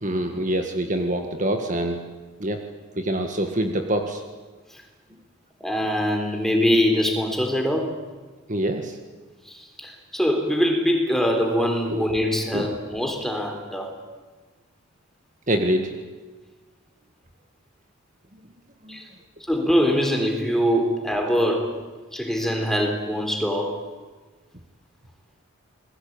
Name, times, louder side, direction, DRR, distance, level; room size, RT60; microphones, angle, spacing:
voice 1, 0.0-2.0 2.4-2.6 3.0-4.2 8.5-9.0 11.9-12.1 12.5-12.7 15.5-15.9 18.8-19.0, right 1 dB, 35° right, 5 dB, 1.8 m, -25 dB
voice 2, 5.6-7.9 9.5-13.9 18.9-19.0 19.5-21.7 22.1-23.8, equal, ahead, 3 dB, 3.7 m, -23 dB
28.0 x 21.0 x 8.9 m, 1.3 s
head